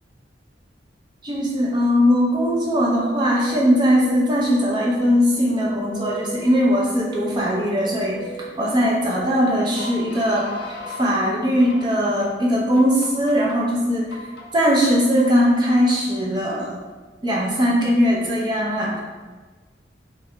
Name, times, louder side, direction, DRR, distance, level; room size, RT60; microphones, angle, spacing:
voice 1, 1.2-8.2 8.6-14.2 14.5-16.7 17.2-19.0, equal, 25° right, -4 dB, 0.5 m, -20 dB
sound 1, 2.3-11.1 11.6-12.3 12.8-13.6 14.1-14.7 15.2-16.0, equal, 60° left, 0.4 m, -38 dB
2.3 x 2.1 x 2.8 m, 1.3 s
head